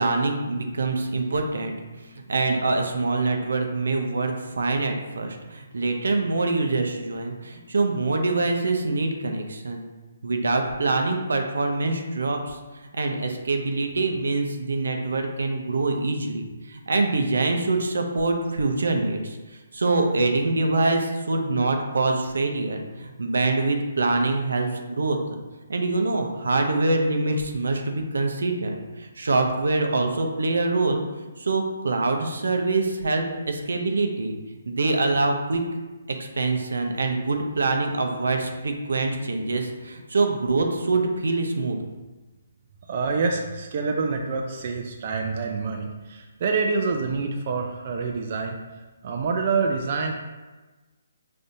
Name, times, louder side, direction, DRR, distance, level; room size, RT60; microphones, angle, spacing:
voice 1, 0.0-1.7 2.1-9.9 10.2-12.6 12.9-16.4 16.7-19.4 19.7-25.4 25.7-31.0 31.4-34.4 34.7-35.6 36.4-41.8, right 3 dB, 85° right, 3 dB, 0.7 m, -24 dB
voice 2, 42.9-48.6 49.0-50.1, right 4 dB, 45° right, 2 dB, 0.4 m, -26 dB
5.2 x 3.3 x 2.7 m, 1.2 s
hypercardioid pair, 160°, 0 cm